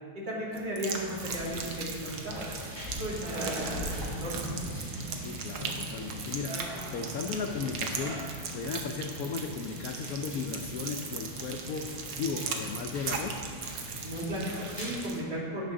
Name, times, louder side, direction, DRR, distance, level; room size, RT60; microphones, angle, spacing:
voice 1, 0.1-2.5 3.0-4.4 14.0-15.7, equal, 60° right, -5 dB, 2.9 m, -35 dB
sound 1, 0.5-15.2, right 5 dB, 90° right, 1.8 m, -39 dB
sound 2, 0.9-15.1, equal, 10° right, 2.8 m, -42 dB
sound 3, 3.2-4.8 6.5-9.1, right 1 dB, 40° right, 1.6 m, -42 dB
voice 2, 5.1-8.2 8.5-13.5, left 5 dB, 75° left, 4 dB, 0.8 m, -36 dB
16.0 x 6.0 x 3.7 m, 2.2 s
omnidirectional pair, 2.2 m